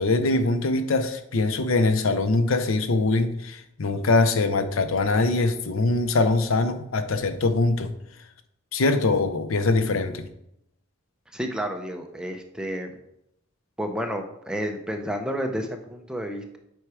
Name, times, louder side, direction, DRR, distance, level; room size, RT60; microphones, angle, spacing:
voice 1, 0.0-7.9 8.7-10.3, left 3 dB, 85° left, 0.7 m, -23 dB
voice 2, 11.3-12.9 13.8-16.6, equal, 5° right, 0.6 m, -30 dB
7.8 x 4.6 x 4.8 m
head